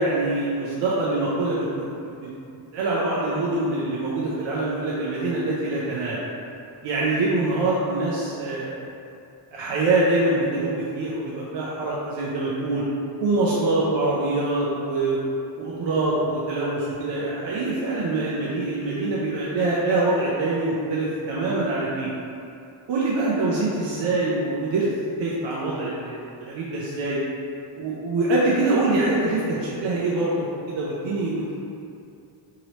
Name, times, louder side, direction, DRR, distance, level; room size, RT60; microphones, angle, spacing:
voice 1, 0.0-2.3 2.7-6.2 6.8-8.8 9.5-12.8 13.2-15.2 15.6-22.1 22.9-24.9 25.2-27.2 27.7-31.5, right 2 dB, 65° right, -7 dB, 0.6 m, -24 dB
3.0 x 2.8 x 2.8 m, 2.6 s
cardioid pair, 120°, 49 cm